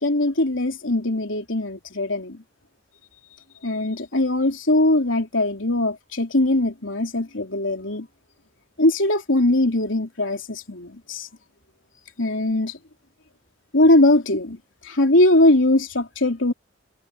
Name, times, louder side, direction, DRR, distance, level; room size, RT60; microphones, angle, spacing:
voice 1, 0.0-2.4 3.6-8.1 8.8-11.3 12.2-12.7 13.7-14.6 14.9-16.5, left 1 dB, 75° left, 3.7 m, -20 dB
head